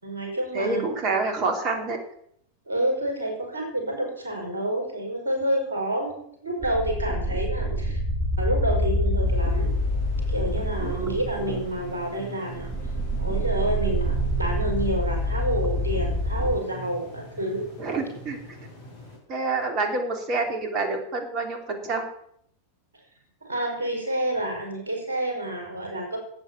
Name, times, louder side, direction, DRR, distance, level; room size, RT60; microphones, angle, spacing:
voice 1, 0.0-0.8 2.7-8.0 8.4-9.8 10.3-12.7 13.2-17.6 23.4-26.2, right 1 dB, 75° right, 1 dB, 5.4 m, -28 dB
voice 2, 0.5-2.0 7.6-7.8 10.8-11.2 11.5-11.6 17.8-18.4 19.3-22.0, right 3 dB, 35° right, 5 dB, 3.1 m, -27 dB
sound 1, 6.6-12.2 12.5-16.5, equal, 15° right, 1.6 m, -26 dB
sound 2, 9.2-19.2, right 1 dB, 60° left, 6.0 m, -41 dB
13.0 x 9.0 x 7.2 m, 0.69 s
figure-of-eight pair, 90°, 0 cm